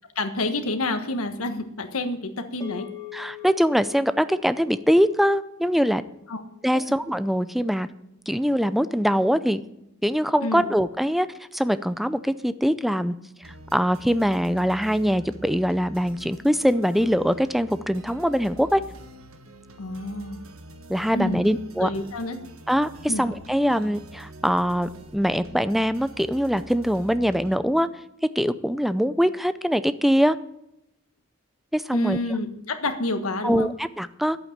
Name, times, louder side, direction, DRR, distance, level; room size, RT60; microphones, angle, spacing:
voice 1, 0.1-2.9 6.3-6.4 6.7-6.8 10.4-10.7 19.8-20.4 21.1-21.4 21.8-22.4 23.1-23.3 31.9-33.7, left 2 dB, 85° left, 7 dB, 1.4 m, -28 dB
sound 1, 2.6-7.1, left 12 dB, 15° left, 2.3 m, -44 dB
voice 2, 3.1-6.0 6.6-7.9 8.3-9.6 10.0-11.3 11.5-13.1 13.7-18.8 20.9-21.9 22.7-27.9 28.4-30.4 31.7-32.2 33.4-34.4, equal, ahead, 13 dB, 0.5 m, -23 dB
sound 2, 13.4-27.6, right 1 dB, 70° right, 1.5 m, -45 dB
11.0 x 8.6 x 7.3 m, 0.83 s
head